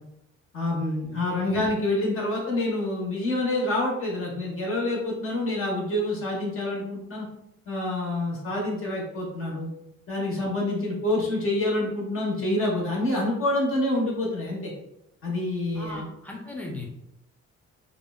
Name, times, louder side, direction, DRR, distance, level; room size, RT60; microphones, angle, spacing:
voice 1, 0.5-7.3 7.7-9.7 10.1-14.7 15.2-16.0, left 1 dB, 45° left, -3 dB, 0.8 m, -27 dB
voice 2, 15.7-16.8, left 2 dB, 5° left, -2 dB, 0.6 m, -38 dB
2.8 x 2.0 x 2.2 m, 0.82 s
cardioid pair, 90°, 30 cm